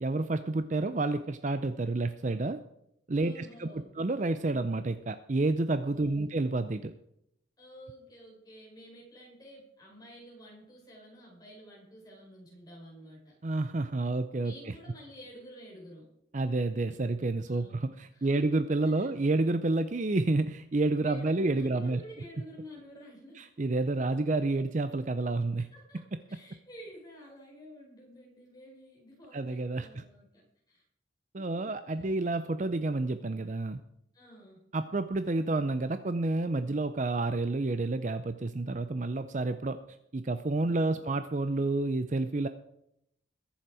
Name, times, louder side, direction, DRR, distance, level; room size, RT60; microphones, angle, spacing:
voice 1, 0.0-2.6 3.1-6.9 13.4-14.7 16.3-22.0 23.3-25.7 29.3-30.0 31.3-33.8 34.7-39.8 40.1-42.5, right 2 dB, 40° right, 10 dB, 0.5 m, -29 dB
voice 2, 3.2-3.9 5.9-6.3 7.6-13.3 14.4-16.1 17.5-17.8 18.1-18.5 19.0-19.1 21.0-23.4 25.6-26.0 26.3-30.8 31.3-32.1 34.1-34.6 40.7-41.0, equal, 20° left, -2 dB, 4.9 m, -50 dB
21.5 x 7.2 x 4.9 m, 0.77 s
head